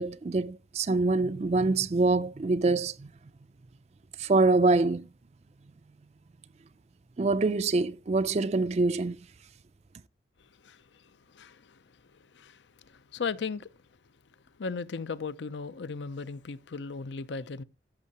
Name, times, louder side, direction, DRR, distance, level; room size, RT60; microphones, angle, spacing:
voice 1, 0.0-3.1 4.2-5.0 7.2-9.2, right 3 dB, 35° right, 0.4 m, -25 dB
voice 2, 13.1-13.7 14.6-17.6, left 5 dB, 75° left, 0.6 m, -36 dB
14.0 x 6.6 x 2.8 m
head